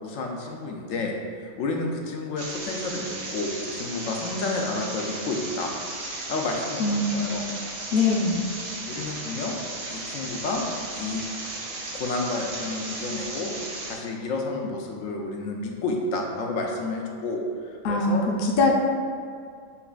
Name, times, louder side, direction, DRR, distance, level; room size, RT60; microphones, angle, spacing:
voice 1, 0.0-5.7 6.3-7.4 8.9-9.6 9.9-10.6 11.0-11.2 11.9-13.5 13.9-18.3, left 3 dB, 80° left, 0 dB, 0.9 m, -30 dB
sound 1, 2.4-14.0, right 2 dB, 70° right, 1.0 m, -35 dB
voice 2, 6.8-7.4 7.9-8.4 17.8-18.7, left 3 dB, 60° left, -1 dB, 0.6 m, -23 dB
6.8 x 2.4 x 2.3 m, 2.2 s
omnidirectional pair, 1.3 m